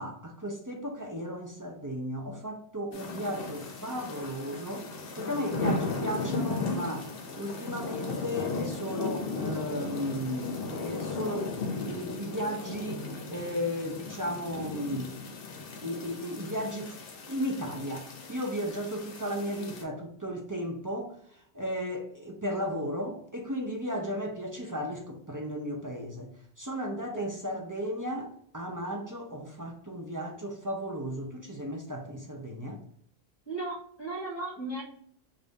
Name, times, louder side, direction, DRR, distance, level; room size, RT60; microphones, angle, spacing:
voice 1, 0.0-4.9 5.2-7.1 7.4-15.1 15.8-17.0 17.3-32.8, equal, 30° right, 0.4 m, -35 dB
sound 1, 2.9-19.8, left 3 dB, 65° left, 0.9 m, -36 dB
voice 2, 27.1-27.6 33.5-34.8, right 2 dB, 25° left, 1.6 m, -36 dB
3.5 x 2.6 x 3.9 m
omnidirectional pair, 1.1 m